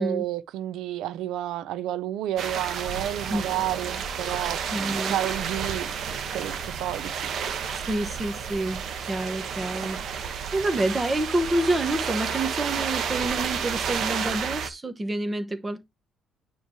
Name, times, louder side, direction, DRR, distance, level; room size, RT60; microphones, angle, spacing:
voice 1, 0.0-7.3 9.8-9.9, right 12 dB, 85° right, 0.5 m, -31 dB
sound 1, 2.4-14.7, right 7 dB, 55° right, 1.1 m, -31 dB
voice 2, 4.7-5.2 7.9-15.8, right 1 dB, 15° right, 1.0 m, -28 dB
9.2 x 3.1 x 4.6 m
cardioid pair, 145°, 0 cm